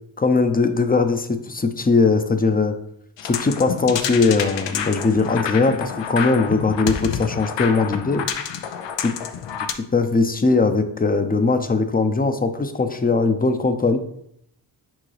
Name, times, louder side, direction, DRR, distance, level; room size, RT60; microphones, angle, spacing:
voice 1, 0.2-2.8 3.2-8.2 9.0-9.1 9.7-14.0, left 3 dB, 20° left, 8 dB, 0.6 m, -20 dB
sound 1, 3.2-9.7, left 8 dB, 90° left, 0.6 m, -28 dB
6.2 x 4.7 x 3.3 m, 0.72 s
wide cardioid pair, 85°, 42 cm